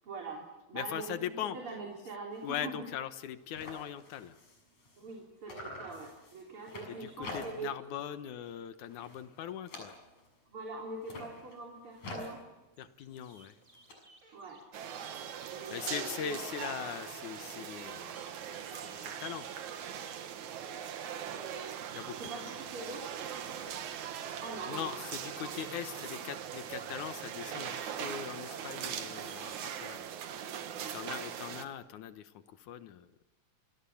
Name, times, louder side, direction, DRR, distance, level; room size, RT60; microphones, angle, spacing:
voice 1, 0.0-2.8 5.0-7.7 10.5-12.4 14.3-14.6 15.5-16.4 21.2-21.8 22.2-23.7 24.4-25.0 25.4-26.0 30.7-31.6, right 3 dB, 45° right, 0 dB, 4.4 m, -44 dB
voice 2, 0.7-1.6 2.4-4.4 6.9-10.0 12.8-13.6 15.7-19.5 21.9-22.2 24.7-30.1 30.9-33.1, left 10 dB, 90° left, 10 dB, 2.6 m, -41 dB
sound 1, 2.3-2.6 2.9-3.0 3.2-5.2 5.5-7.8 8.2-8.5 8.8-10.4 10.9-13.9, left 2 dB, 70° left, 8.2 m, -47 dB
sound 2, 12.7-29.4, right 1 dB, 25° right, 6.0 m, -62 dB
sound 3, 14.7-31.7, right 8 dB, 80° right, 2.9 m, -41 dB
28.5 x 26.0 x 7.2 m, 1.0 s
omnidirectional pair, 3.3 m